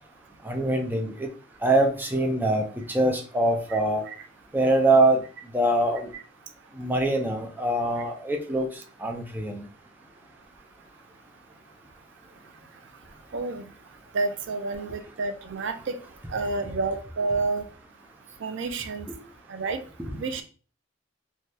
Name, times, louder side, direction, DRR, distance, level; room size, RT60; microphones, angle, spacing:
voice 1, 0.4-1.3 1.6-4.0 4.5-5.2 5.5-6.1 6.7-8.7 9.0-9.6 19.1-19.2 20.0-20.1, right 2 dB, 10° right, 3 dB, 0.5 m, -24 dB
voice 2, 13.3-13.6 14.1-16.0 16.3-17.6 18.4-19.1 19.5-19.8 20.2-20.4, right 3 dB, 70° right, 8 dB, 0.4 m, -29 dB
3.3 x 2.3 x 2.6 m, 0.38 s
head